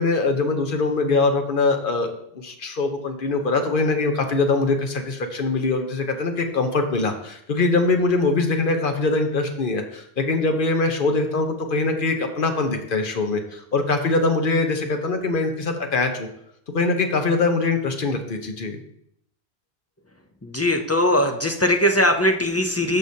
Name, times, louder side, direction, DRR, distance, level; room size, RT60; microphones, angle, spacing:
voice 1, 0.0-16.3 16.7-18.8, left 3 dB, 55° left, 5 dB, 1.1 m, -23 dB
voice 2, 20.4-23.0, left 1 dB, 20° left, 4 dB, 0.4 m, -20 dB
13.5 x 4.9 x 2.8 m, 0.73 s
omnidirectional pair, 1.1 m